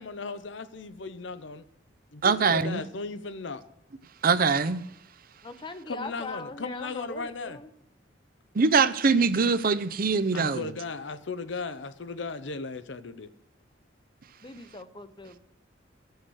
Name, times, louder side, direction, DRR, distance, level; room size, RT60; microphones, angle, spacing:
voice 1, 0.0-1.6 2.1-3.6 5.9-7.6 10.3-13.3, left 4 dB, 75° left, 0.8 m, -36 dB
voice 2, 2.2-2.8 4.2-4.8 8.6-10.7, right 5 dB, 50° right, 0.6 m, -23 dB
voice 3, 5.4-7.7 14.4-15.4, left 2 dB, 25° left, 0.8 m, -40 dB
16.5 x 6.5 x 6.4 m
head